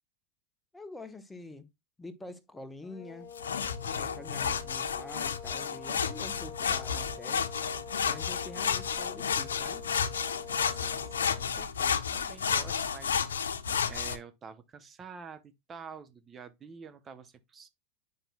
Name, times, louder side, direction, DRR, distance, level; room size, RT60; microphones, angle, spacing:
voice 1, 0.7-1.7 2.0-3.3 3.8-7.5 8.0-9.8, left 2 dB, 10° left, 1.1 m, -46 dB
sound 1, 2.8-11.6, left 7 dB, 40° left, 0.9 m, -46 dB
sound 2, 3.4-14.2, left 7 dB, 90° left, 0.7 m, -31 dB
voice 2, 10.6-13.5 13.9-17.7, right 6 dB, 30° right, 0.8 m, -48 dB
8.9 x 5.4 x 2.2 m
hypercardioid pair, 100°, 0 cm